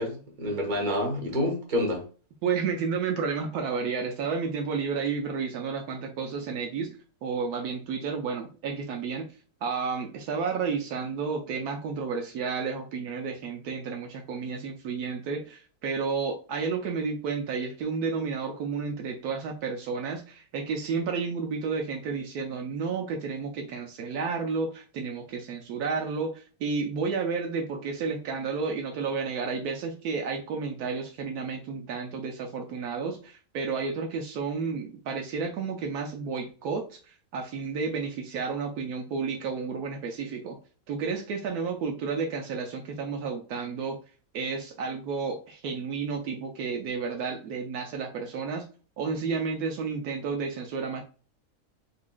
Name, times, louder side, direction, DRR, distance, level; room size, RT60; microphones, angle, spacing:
voice 1, 0.0-2.0, left 1 dB, 35° right, 1.2 m, -28 dB
voice 2, 2.4-9.3 9.6-40.6 40.9-44.0 44.3-48.7 49.0-51.0, right 5 dB, 80° right, 1.1 m, -31 dB
4.1 x 2.9 x 2.3 m
omnidirectional pair, 1.6 m